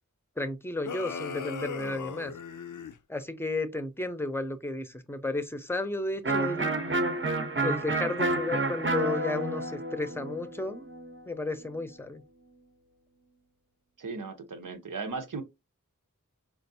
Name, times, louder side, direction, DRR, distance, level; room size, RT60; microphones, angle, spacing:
voice 1, 0.4-2.3 3.1-6.7 7.6-10.9 11.3-12.2, left 2 dB, 10° left, 0.6 m, -33 dB
sound 1, 0.8-3.0, left 6 dB, 75° left, 0.5 m, -37 dB
Electric guitar, 6.2-11.9, right 2 dB, 40° right, 0.7 m, -30 dB
voice 2, 14.0-15.4, right 4 dB, 85° right, 0.7 m, -36 dB
4.4 x 2.4 x 2.6 m
wide cardioid pair, 45°, 31 cm